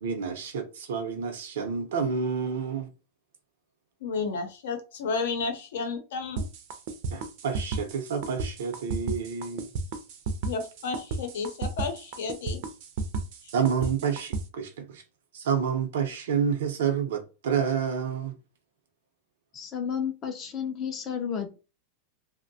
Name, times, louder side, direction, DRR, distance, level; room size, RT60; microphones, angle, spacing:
voice 1, 0.0-2.9 7.1-9.7 13.5-15.0 15.3-18.4, right 6 dB, 85° right, 0.6 m, -29 dB
voice 2, 4.0-6.4 10.4-12.6, left 4 dB, 85° left, 0.7 m, -32 dB
sound 1, 6.4-14.4, right 4 dB, 45° right, 0.4 m, -32 dB
voice 3, 19.5-21.6, left 7 dB, 25° left, 0.3 m, -32 dB
2.6 x 2.1 x 2.6 m
supercardioid pair, 170°, 0 cm